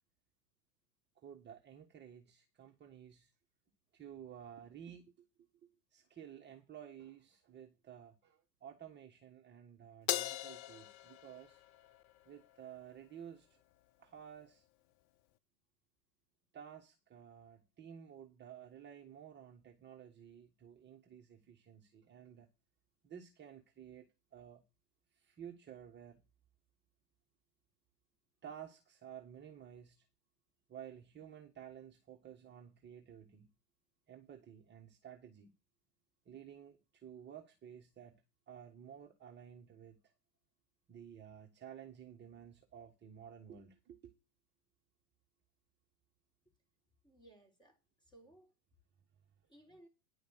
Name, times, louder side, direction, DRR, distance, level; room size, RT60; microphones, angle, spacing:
voice 1, 1.2-3.3 3.9-11.6 12.2-13.6 14.0-14.7 16.5-22.5 23.0-24.6 25.1-26.2 28.4-30.1 30.7-33.5 34.1-35.5 36.2-40.0 40.9-44.1, right 9 dB, 20° right, 1.4 m, -53 dB
Crash cymbal, 10.1-12.6, left 14 dB, 35° left, 0.5 m, -40 dB
voice 2, 47.0-48.5 49.5-49.9, right 1 dB, 10° left, 3.7 m, -62 dB
10.5 x 5.2 x 7.7 m
hypercardioid pair, 100°, 48 cm